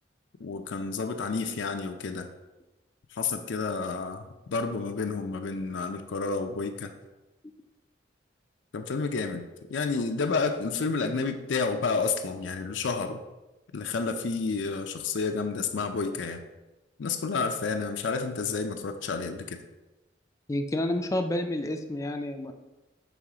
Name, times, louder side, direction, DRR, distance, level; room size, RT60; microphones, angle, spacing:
voice 1, 0.4-2.3 3.1-6.9 8.7-13.2 13.7-16.4 17.0-19.6, left 4 dB, 90° left, 6 dB, 0.5 m, -30 dB
voice 2, 20.5-22.5, left 1 dB, 15° left, 5 dB, 0.3 m, -29 dB
6.2 x 3.1 x 4.9 m, 1.1 s
head